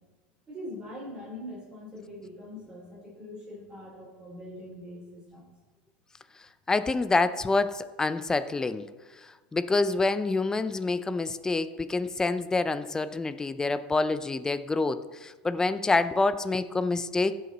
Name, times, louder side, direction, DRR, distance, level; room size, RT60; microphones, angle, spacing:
voice 1, 0.5-5.5, left 1 dB, 15° right, -5 dB, 3.7 m, -42 dB
voice 2, 6.7-8.9 9.5-17.4, left 3 dB, 15° left, 13 dB, 0.5 m, -27 dB
15.5 x 5.7 x 4.2 m, 1.3 s
supercardioid pair, 125°, 5 cm